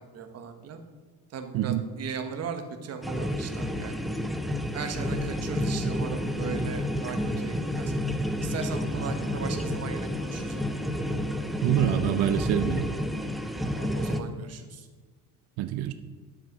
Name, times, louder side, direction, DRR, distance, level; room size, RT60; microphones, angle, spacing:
voice 1, 0.1-0.8 1.3-4.0 4.7-7.9 8.4-10.7 13.6-14.9, right 6 dB, 40° right, 6 dB, 1.2 m, -38 dB
sound 1, 3.0-14.2, equal, ahead, 0.5 m, -30 dB
voice 2, 11.6-12.9 15.6-15.9, right 12 dB, 85° right, 10 dB, 0.8 m, -25 dB
10.5 x 8.3 x 6.1 m, 1.3 s
cardioid pair, 170°, 38 cm